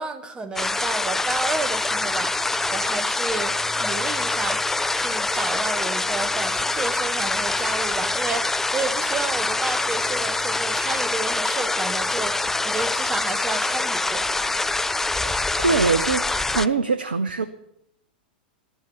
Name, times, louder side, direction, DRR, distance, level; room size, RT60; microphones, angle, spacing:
voice 1, 0.0-3.5 3.8-4.6 4.9-14.4, right 3 dB, 15° right, 11 dB, 1.5 m, -31 dB
sound 1, 0.6-16.7, left 2 dB, 5° left, 0.4 m, -25 dB
voice 2, 15.2-17.5, right 4 dB, 75° right, 11 dB, 0.8 m, -23 dB
12.5 x 11.0 x 7.3 m, 0.78 s
figure-of-eight pair, 95°, 5 cm